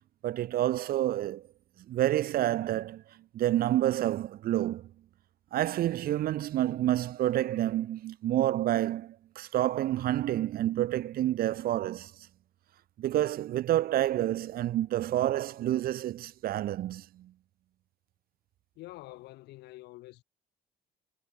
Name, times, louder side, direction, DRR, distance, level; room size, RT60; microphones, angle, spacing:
voice 1, 0.2-1.4 1.9-3.0 3.3-4.9 5.5-12.1 13.0-17.3, right 13 dB, 60° right, 1.0 m, -28 dB
voice 2, 18.8-20.2, left 18 dB, 85° left, 3.0 m, -47 dB
cardioid pair, 110°, 17 cm